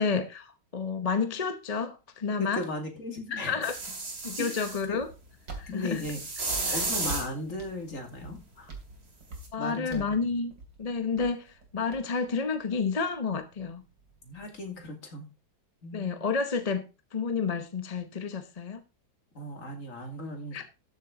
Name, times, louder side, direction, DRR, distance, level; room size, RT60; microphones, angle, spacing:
voice 1, 0.0-2.6 3.3-3.8 4.2-5.1 5.6-6.0 6.6-6.8 9.5-10.5 10.8-13.8 15.9-18.8 20.5-20.6, left 5 dB, 30° left, 0.8 m, -30 dB
voice 2, 2.4-3.7 4.4-4.6 4.9-5.0 5.7-6.2 6.7-8.7 9.6-10.4 14.2-15.3 15.8-16.2 19.3-20.6, left 1 dB, 50° left, 2.8 m, -37 dB
sound 1, 3.6-4.8 5.9-7.3 9.4-9.5, right 3 dB, 35° right, 2.4 m, -33 dB
sound 2, 5.0-14.9, right 3 dB, 85° right, 3.6 m, -47 dB
13.0 x 7.5 x 3.8 m
omnidirectional pair, 1.9 m